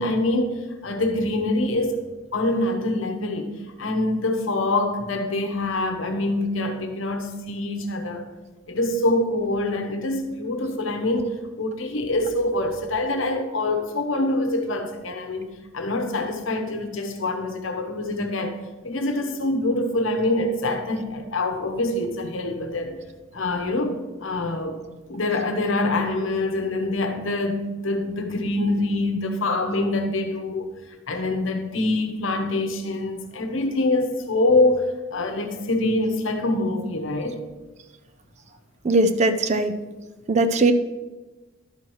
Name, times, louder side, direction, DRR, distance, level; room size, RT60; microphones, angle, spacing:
voice 1, 0.0-2.0 2.3-8.3 8.7-23.0 23.3-24.8 25.1-30.7 31.1-37.4, left 2 dB, 75° left, 1.0 m, -25 dB
voice 2, 38.8-39.7 40.3-40.7, right 2 dB, 35° right, 0.4 m, -19 dB
12.0 x 4.7 x 4.6 m
head